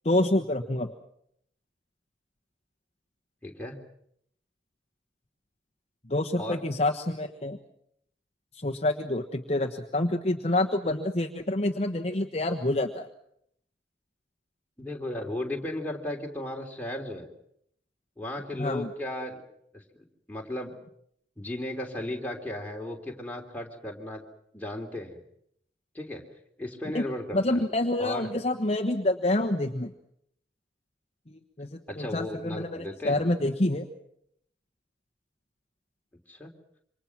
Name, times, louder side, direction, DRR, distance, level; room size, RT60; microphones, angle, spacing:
voice 1, 0.0-0.9 6.1-7.6 8.5-13.1 18.6-18.9 26.9-27.0 27.3-29.9 31.3-33.9, left 1 dB, 35° left, 3 dB, 1.2 m, -27 dB
voice 2, 3.4-3.8 6.4-6.6 14.8-17.3 18.2-19.4 19.7-19.8 20.3-20.7 21.4-24.2 24.5-25.2 25.9-26.2 26.6-27.6 28.0-28.3 31.9-33.2 36.3-36.5, left 1 dB, 10° left, 0 dB, 3.3 m, -35 dB
27.5 x 25.0 x 6.0 m, 0.72 s
head